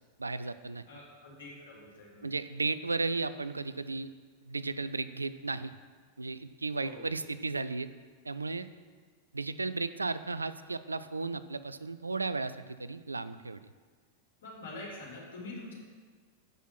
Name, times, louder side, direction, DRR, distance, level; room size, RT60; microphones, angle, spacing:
voice 1, 0.2-0.8 2.2-4.1 4.5-5.7 6.2-7.9 8.3-8.7 9.3-13.6, right 3 dB, 80° right, 13 dB, 0.3 m, -34 dB
voice 2, 0.9-2.3 6.8-7.1 14.4-15.8, left 2 dB, 60° left, -5 dB, 3.0 m, -45 dB
8.1 x 6.2 x 5.8 m, 1.5 s
figure-of-eight pair, 90°, 0 cm